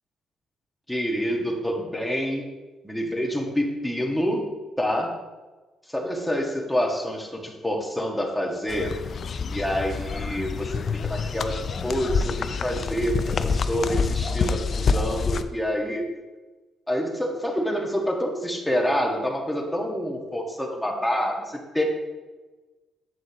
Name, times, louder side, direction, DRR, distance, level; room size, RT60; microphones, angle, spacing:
voice 1, 0.9-2.4 2.8-4.5 4.8-5.1 5.9-8.9 9.5-16.0 16.9-21.8, equal, 5° left, 0 dB, 1.5 m, -27 dB
sound 1, 8.7-15.4, left 5 dB, 50° left, 0.4 m, -27 dB
7.8 x 7.5 x 2.9 m, 1.2 s
cardioid pair, 90°, 0 cm